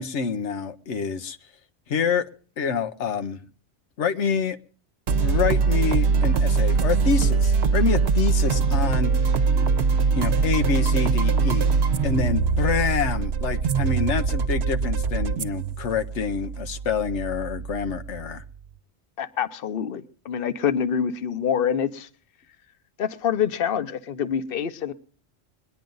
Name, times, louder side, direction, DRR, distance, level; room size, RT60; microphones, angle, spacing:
voice 1, 0.0-1.4 1.9-2.3 2.6-3.4 4.0-4.6 5.2-9.1 10.1-11.7 12.0-18.4, left 6 dB, 85° left, 8 dB, 1.2 m, -27 dB
sound 1, 5.1-18.5, right 5 dB, 70° right, 1.1 m, -22 dB
voice 2, 19.2-22.1 23.0-24.9, left 8 dB, 55° left, 12 dB, 1.0 m, -26 dB
22.0 x 10.5 x 3.9 m, 0.42 s
omnidirectional pair, 1.2 m